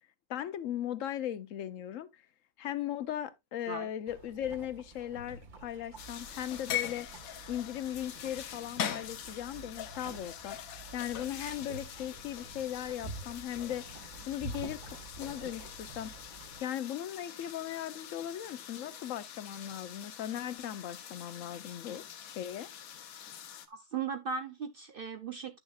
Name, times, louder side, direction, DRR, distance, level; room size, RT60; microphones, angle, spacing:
voice 1, 0.3-2.2 2.6-7.1 7.5-10.6 10.9-13.8 14.3-16.1 16.6-22.7, left 11 dB, 75° left, 1.0 m, -38 dB
sound 1, 4.1-16.6, right 3 dB, 40° right, 1.0 m, -48 dB
sound 2, 6.0-23.7, left 9 dB, 90° left, 1.2 m, -43 dB
voice 2, 23.7-25.6, right 6 dB, 60° right, 0.6 m, -37 dB
9.9 x 6.4 x 2.3 m
omnidirectional pair, 1.4 m